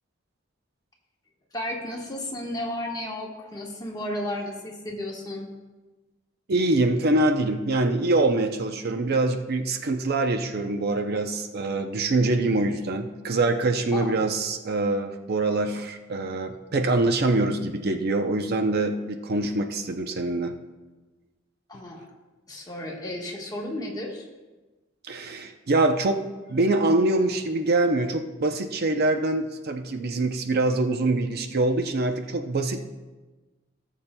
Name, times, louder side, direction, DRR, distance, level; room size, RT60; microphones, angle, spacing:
voice 1, 1.5-5.5 13.9-14.2 21.7-22.0 22.5-24.3, left 1 dB, 20° left, -1 dB, 1.4 m, -33 dB
voice 2, 6.5-20.5 25.0-26.2 26.5-32.8, right 2 dB, 55° right, 6 dB, 0.6 m, -24 dB
18.0 x 7.2 x 2.2 m, 1.2 s
head